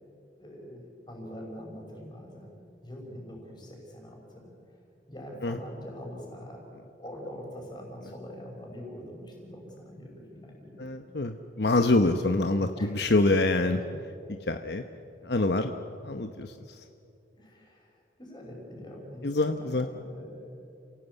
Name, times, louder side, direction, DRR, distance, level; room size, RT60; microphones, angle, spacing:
voice 1, 0.4-2.5 2.8-4.5 5.1-6.7 7.0-10.9 12.8-13.2 17.4-20.5, equal, 25° left, 0 dB, 5.6 m, -44 dB
voice 2, 10.8-13.8 14.5-14.8 15.2-15.7 16.0-16.8 19.2-19.9, left 2 dB, 65° left, 7 dB, 1.0 m, -26 dB
29.5 x 17.5 x 8.3 m, 2.6 s
head